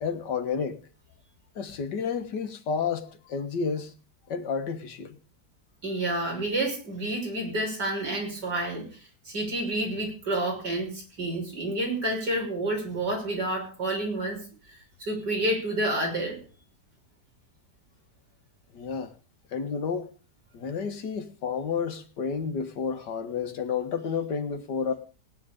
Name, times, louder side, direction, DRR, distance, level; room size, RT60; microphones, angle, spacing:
voice 1, 0.0-0.8 1.6-3.9 4.3-5.2 18.7-19.1 19.5-20.1 20.5-24.9, left 6 dB, 85° left, 2.1 m, -31 dB
voice 2, 5.8-16.4, right 1 dB, 80° right, 6.5 m, -29 dB
18.5 x 9.9 x 5.2 m
omnidirectional pair, 1.8 m